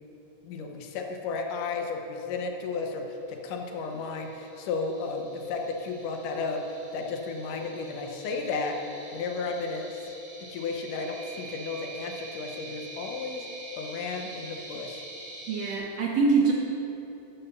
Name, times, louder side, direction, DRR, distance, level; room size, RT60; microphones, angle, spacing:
voice 1, 0.4-6.6 6.9-8.8 9.1-10.1 10.4-13.5 13.8-15.0, left 4 dB, 75° left, 3 dB, 2.3 m, -33 dB
sound 1, 3.6-15.8, right 2 dB, 15° right, 1.5 m, -45 dB
voice 2, 15.5-16.5, right 4 dB, 65° right, -2 dB, 1.7 m, -24 dB
12.5 x 5.6 x 7.0 m, 3.0 s
omnidirectional pair, 3.9 m